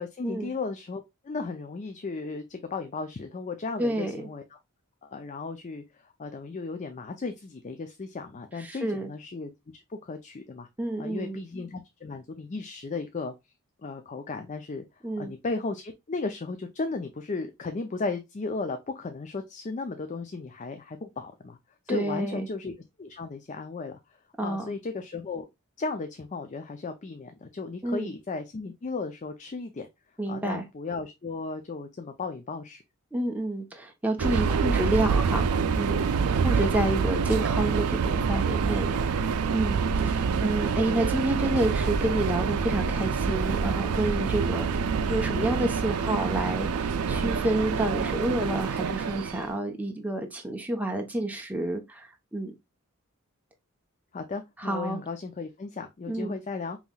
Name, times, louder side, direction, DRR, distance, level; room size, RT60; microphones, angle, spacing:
voice 1, 0.0-4.6 5.0-10.7 11.0-13.3 13.8-14.8 15.2-21.6 21.9-24.0 24.4-25.5 25.8-29.9 30.3-32.8 54.1-56.8, left 3 dB, 35° left, 0.5 m, -35 dB
voice 2, 3.8-4.3 8.6-9.1 10.8-11.4 15.0-15.3 21.9-22.3 24.4-24.7 27.8-28.1 30.2-30.6 33.1-35.5 35.7-36.0 36.4-44.6 45.1-52.5 54.6-55.0 56.1-56.4, right 1 dB, 5° right, 0.8 m, -29 dB
Subway metro underground, 34.2-49.5, right 5 dB, 90° right, 0.4 m, -26 dB
5.5 x 3.0 x 2.2 m
head